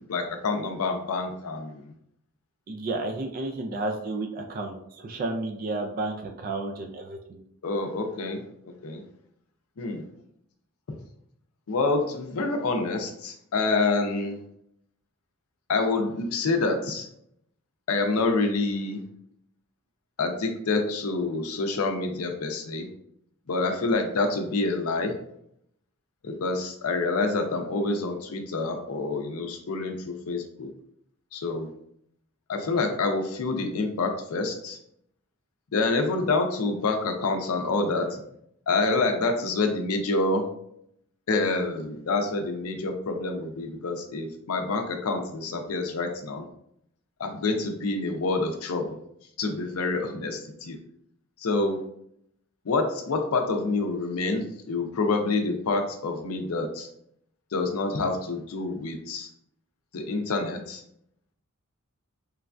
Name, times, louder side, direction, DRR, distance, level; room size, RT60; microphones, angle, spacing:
voice 1, 0.0-1.9 7.6-9.0 9.8-10.0 11.7-14.4 15.7-17.1 17.9-19.0 20.2-22.9 23.5-25.1 26.2-30.7 31.3-31.7 32.5-34.8 35.7-38.2 38.7-40.4 41.3-46.5 47.2-49.0 49.4-50.8 51.4-51.8 52.6-56.9 57.5-59.3 59.9-60.8, left 3 dB, 80° left, 5 dB, 0.5 m, -27 dB
voice 2, 2.7-7.4, right 2 dB, 40° right, 4 dB, 0.3 m, -32 dB
3.1 x 2.2 x 2.4 m, 0.72 s
head